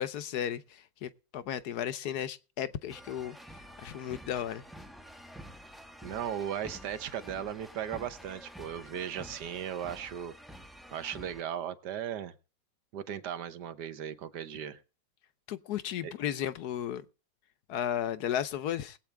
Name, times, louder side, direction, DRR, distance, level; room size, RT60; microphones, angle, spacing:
voice 1, 0.0-3.4 3.8-4.6 15.5-17.0 17.7-19.0, left 10 dB, 65° left, 1.2 m, -34 dB
sound 1, 2.9-11.4, equal, ahead, 0.6 m, -49 dB
voice 2, 6.0-10.3 10.9-12.3 12.9-14.8 16.0-16.1, right 9 dB, 65° right, 1.5 m, -37 dB
20.5 x 8.4 x 3.4 m
omnidirectional pair, 2.0 m